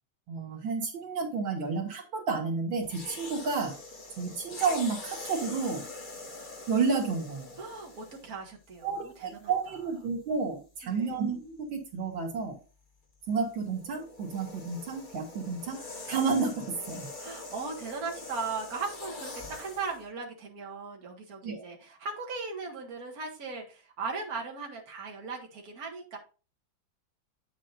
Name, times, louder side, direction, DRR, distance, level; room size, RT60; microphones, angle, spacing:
voice 1, 0.3-3.7 4.2-5.8 6.7-7.5 8.8-12.6 13.3-15.8 16.1-17.1 21.4-21.7, right 5 dB, 80° right, 3 dB, 2.3 m, -31 dB
sound 1, 2.8-8.4 9.2-9.4 13.3-20.0, left 3 dB, 30° left, 1.3 m, -44 dB
voice 2, 7.6-9.1 9.4-9.5 10.8-11.1 17.2-26.2, right 4 dB, 50° right, 0 dB, 2.2 m, -38 dB
9.0 x 7.4 x 2.6 m, 0.34 s
omnidirectional pair, 2.1 m